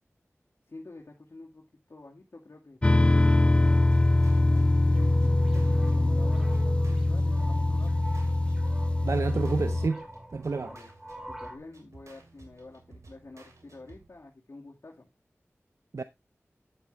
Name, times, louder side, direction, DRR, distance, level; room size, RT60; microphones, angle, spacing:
voice 1, 0.7-3.8 4.4-8.1 10.6-10.9 11.3-15.1, left 2 dB, 60° left, 2.1 m, -49 dB
sound 1, 2.8-9.9, left 2 dB, 20° left, 0.4 m, -23 dB
sound 2, 3.8-14.3, right 3 dB, 90° right, 2.5 m, -54 dB
sound 3, 4.9-11.6, right 1 dB, 10° right, 2.2 m, -42 dB
voice 2, 9.0-10.0 10.3-10.7 15.9-16.0, right 4 dB, 70° right, 0.6 m, -29 dB
9.3 x 8.2 x 3.3 m
wide cardioid pair, 55°, 5 cm